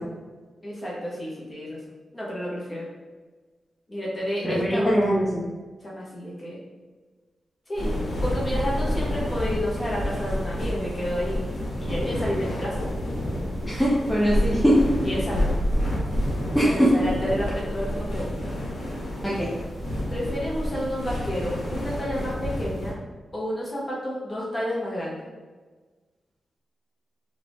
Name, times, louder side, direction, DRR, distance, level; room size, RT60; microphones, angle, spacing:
voice 1, 0.6-1.8 2.1-2.9 3.9-5.3 5.8-6.6 7.7-11.5 11.8-12.9 15.0-15.5 16.6-18.5 20.1-23.0 23.3-25.3, equal, 25° left, -5 dB, 1.0 m, -30 dB
voice 2, 4.4-5.4 13.7-14.8 16.5-16.9 19.2-19.5, right 1 dB, 5° left, -7 dB, 0.6 m, -22 dB
sound 1, 7.7-22.9, left 1 dB, 70° left, 1.0 m, -29 dB
2.8 x 2.5 x 3.5 m, 1.3 s
cardioid pair, 95°, 0 cm